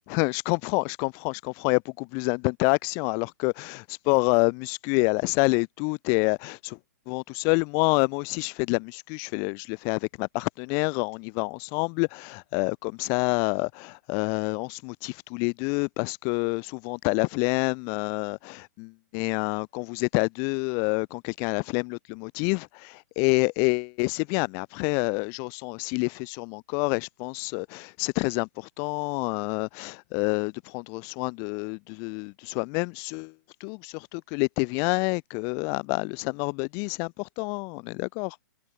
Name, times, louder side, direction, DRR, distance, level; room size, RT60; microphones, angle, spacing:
voice 1, 0.1-6.8 7.1-33.3 33.6-38.4, left 36 dB, 30° left, 0.7 m, -28 dB
figure-of-eight pair, 120°, 10 cm